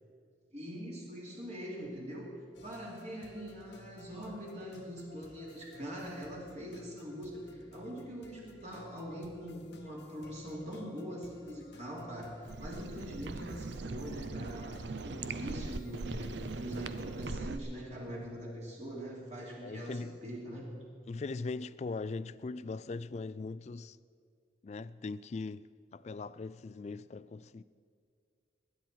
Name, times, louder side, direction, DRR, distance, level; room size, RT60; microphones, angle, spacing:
voice 1, 0.5-2.3 2.6-20.8, equal, 40° right, 3.1 m, -43 dB
sound 1, 2.5-17.4, left 2 dB, 80° left, 0.9 m, -57 dB
sound 2, 12.4-17.6, right 3 dB, 80° right, 0.6 m, -40 dB
voice 2, 19.6-20.2 21.1-24.0 24.6-25.7 25.9-27.6, left 3 dB, 40° left, 0.3 m, -40 dB
20.0 x 10.0 x 4.5 m
head